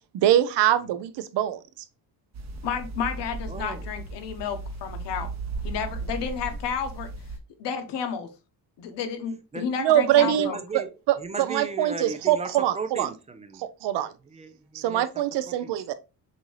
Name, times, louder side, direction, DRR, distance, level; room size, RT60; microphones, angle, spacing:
voice 1, 0.1-1.6 9.8-11.2 11.5-13.1 13.6-14.1 14.7-15.9, right 12 dB, 80° right, 0.6 m, -23 dB
sound 1, 2.3-7.4, right 3 dB, 40° right, 0.8 m, -36 dB
voice 2, 2.6-5.3 5.6-7.1 7.6-8.3 8.8-10.6, left 7 dB, 90° left, 1.0 m, -31 dB
voice 3, 3.5-3.9 9.5-9.7 10.2-10.9 11.2-13.7 14.2-15.1 15.5-15.7, right 4 dB, 20° right, 0.4 m, -36 dB
6.2 x 2.7 x 3.1 m
cardioid pair, 150°, 41 cm